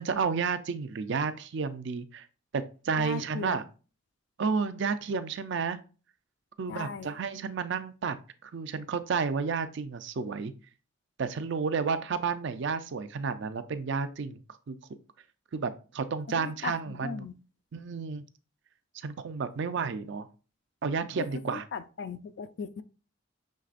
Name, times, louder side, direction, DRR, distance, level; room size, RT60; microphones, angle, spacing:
voice 1, 0.0-2.3 2.5-3.6 4.4-5.8 6.6-8.2 8.4-10.5 11.2-14.8 15.5-17.3 17.7-18.2 19.0-20.3 20.8-21.6, right 5 dB, 60° right, 0.4 m, -31 dB
voice 2, 3.0-3.6 6.7-7.1 16.4-17.3 21.5-22.8, left 5 dB, 55° left, 0.4 m, -38 dB
6.4 x 3.3 x 2.4 m
head